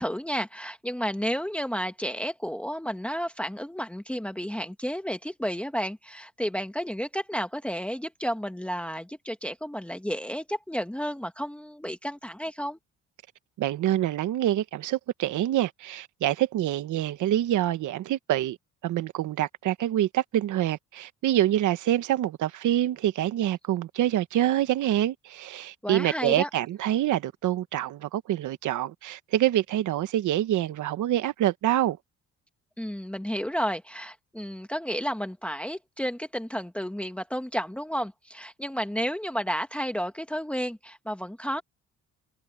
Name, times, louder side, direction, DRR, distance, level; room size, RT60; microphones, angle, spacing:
voice 1, 0.0-12.8 25.8-26.5 32.8-41.6, equal, 5° left, 1.5 m, -32 dB
voice 2, 13.6-18.6 18.8-32.0, right 12 dB, 80° right, 1.2 m, -26 dB
cardioid pair, 90°, 30 cm